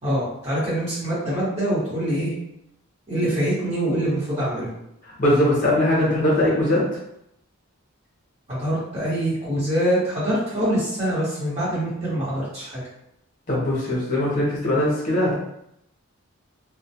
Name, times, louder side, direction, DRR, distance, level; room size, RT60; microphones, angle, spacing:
voice 1, 0.0-2.3 3.1-4.7 8.5-12.8, right 1 dB, 30° right, -9 dB, 1.1 m, -24 dB
voice 2, 5.2-6.8 13.5-15.3, left 1 dB, 35° left, -6 dB, 0.7 m, -20 dB
2.2 x 2.2 x 2.7 m, 0.79 s
head